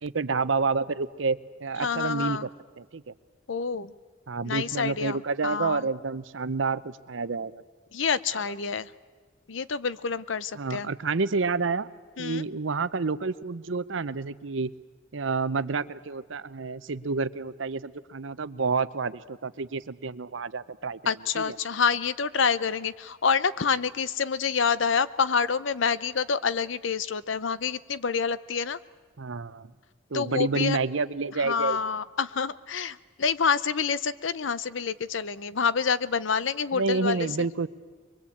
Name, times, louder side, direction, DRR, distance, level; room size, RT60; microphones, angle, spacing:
voice 1, 0.0-2.5 2.8-3.1 4.3-7.6 8.3-8.4 10.6-11.9 12.2-14.7 15.1-21.6 29.2-29.7 30.1-31.8 36.7-37.7, right 4 dB, 70° right, 15 dB, 0.8 m, -29 dB
voice 2, 1.8-2.5 3.5-3.9 4.4-5.9 7.9-8.9 9.5-10.9 12.2-12.4 21.1-28.8 30.1-30.8 31.4-37.3, left 6 dB, 70° left, 16 dB, 0.7 m, -27 dB
23.5 x 22.0 x 8.5 m, 1.5 s
head